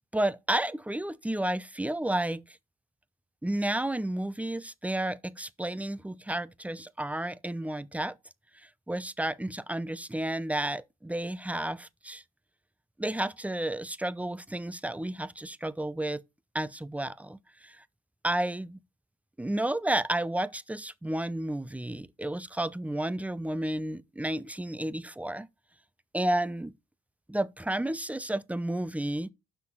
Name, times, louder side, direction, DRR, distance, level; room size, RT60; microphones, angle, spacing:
voice 1, 0.1-2.6 3.4-8.2 8.6-12.2 13.0-16.2 16.5-17.8 18.2-18.8 19.4-25.5 26.1-26.7 27.3-29.3, right 1 dB, 5° right, 0.5 m, -31 dB
6.0 x 5.9 x 5.9 m
cardioid pair, 90°, 30 cm